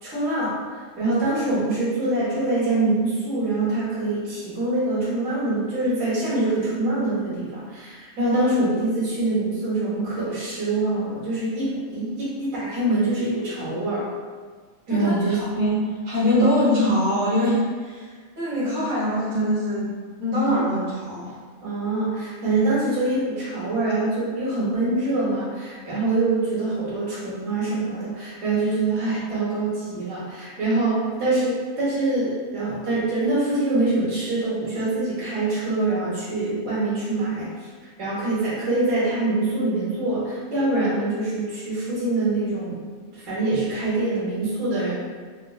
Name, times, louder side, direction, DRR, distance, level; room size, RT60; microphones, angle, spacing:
voice 1, 0.0-14.1 14.9-15.4 21.6-37.7 38.0-44.9, right 2 dB, 60° right, -9 dB, 1.5 m, -24 dB
voice 2, 15.4-19.9 20.2-21.4, equal, 75° right, -10 dB, 1.6 m, -23 dB
5.2 x 2.0 x 2.3 m, 1.5 s
omnidirectional pair, 1.5 m